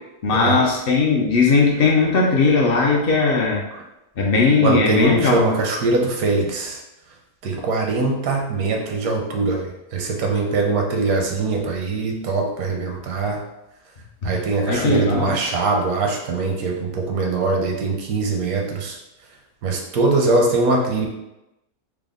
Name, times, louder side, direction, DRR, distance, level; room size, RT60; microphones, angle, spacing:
voice 1, 0.2-3.6 4.2-5.4 14.2-14.3 14.7-15.4, left 4 dB, 65° left, -1 dB, 0.5 m, -18 dB
voice 2, 4.6-6.8 7.4-13.4 14.2-19.0 19.6-21.1, right 3 dB, 80° right, 1 dB, 1.1 m, -22 dB
3.4 x 2.0 x 3.5 m, 0.95 s
omnidirectional pair, 1.5 m